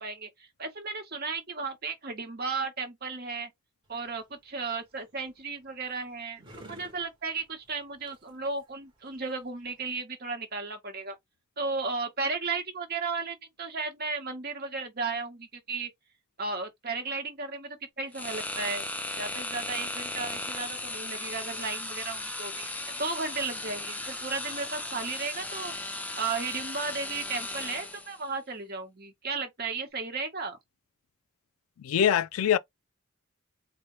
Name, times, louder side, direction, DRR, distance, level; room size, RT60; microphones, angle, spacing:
voice 1, 0.0-3.5 3.9-6.4 6.7-11.1 11.6-15.9 16.4-18.8 19.2-22.7 23.0-25.7 26.2-30.6, right 4 dB, 45° right, 1.1 m, -34 dB
sound 1, 3.8-9.9, right 1 dB, 20° right, 1.0 m, -55 dB
sound 2, 18.1-28.2, left 2 dB, 5° left, 0.4 m, -36 dB
voice 2, 31.8-32.6, left 9 dB, 80° left, 0.3 m, -23 dB
4.2 x 2.2 x 3.0 m
head